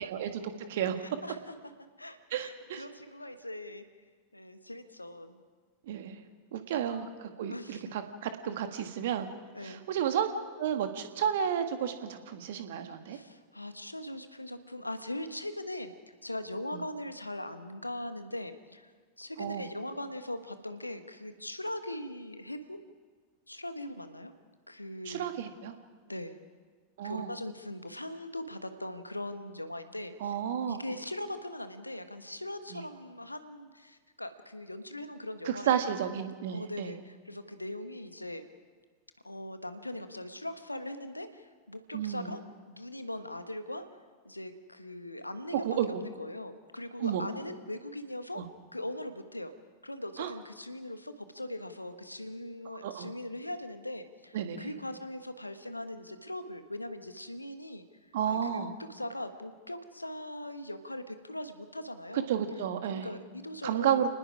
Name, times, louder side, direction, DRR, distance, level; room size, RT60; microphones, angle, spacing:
voice 1, 0.1-1.0 2.3-2.8 5.9-6.2 6.5-9.3 9.6-10.3 10.6-13.2 19.4-19.7 25.1-25.7 27.0-27.3 30.2-30.8 32.7-32.8 35.5-36.9 41.9-42.3 45.6-45.9 47.0-47.2 48.4-48.5 50.2-50.3 52.8-53.1 54.3-54.7 58.1-58.7 62.3-63.2 63.6-64.1, right 9 dB, 55° right, 7 dB, 1.8 m, -32 dB
voice 2, 1.0-1.5 2.0-3.8 4.3-5.4 7.4-7.8 9.5-9.8 13.1-15.9 16.2-18.9 19.2-22.8 23.5-24.3 24.7-25.3 26.1-26.4 27.0-30.4 30.7-35.9 36.5-38.5 39.2-42.4 42.7-43.8 44.2-48.4 48.7-49.5 49.8-58.6 58.9-62.3 62.8-64.1, left 1 dB, 85° left, 9 dB, 1.4 m, -40 dB
29.5 x 19.5 x 4.9 m, 1.5 s
figure-of-eight pair, 90°, 0 cm